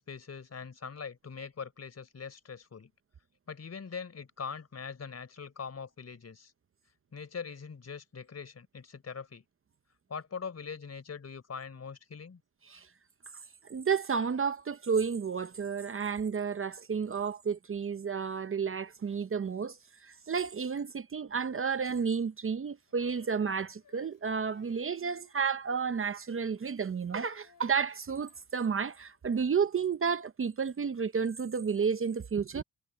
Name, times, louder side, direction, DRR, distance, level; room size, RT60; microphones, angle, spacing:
voice 1, 0.0-2.9 3.5-6.5 7.1-9.4 10.1-12.4, left 6 dB, 40° left, 4.1 m, -42 dB
voice 2, 13.7-19.8 20.0-32.6, right 6 dB, 35° right, 0.7 m, -31 dB
Female singing, 22.9-29.2 29.9-30.0, left 7 dB, 55° left, 7.5 m, -64 dB
cardioid pair, 120°, 40 cm